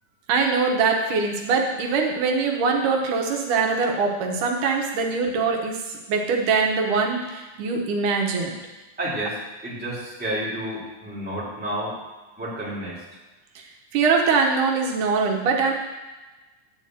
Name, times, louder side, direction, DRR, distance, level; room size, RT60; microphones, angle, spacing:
voice 1, 0.3-8.6 13.9-15.7, right 4 dB, 85° right, 1 dB, 2.6 m, -23 dB
voice 2, 9.0-12.0 12.4-13.0, right 1 dB, 5° right, -8 dB, 2.4 m, -30 dB
10.0 x 4.2 x 7.5 m, 1.2 s
omnidirectional pair, 3.5 m